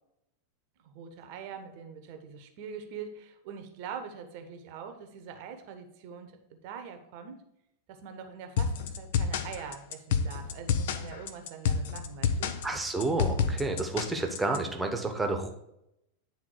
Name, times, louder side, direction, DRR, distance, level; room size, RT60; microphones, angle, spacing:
voice 1, 0.8-7.4 7.9-12.5, right 7 dB, 45° right, 6 dB, 1.0 m, -43 dB
sound 1, 8.6-14.6, left 6 dB, 55° left, 0.6 m, -29 dB
voice 2, 12.6-15.5, right 2 dB, 10° right, 4 dB, 1.1 m, -30 dB
9.4 x 3.8 x 4.8 m, 0.81 s
figure-of-eight pair, 90°, 0 cm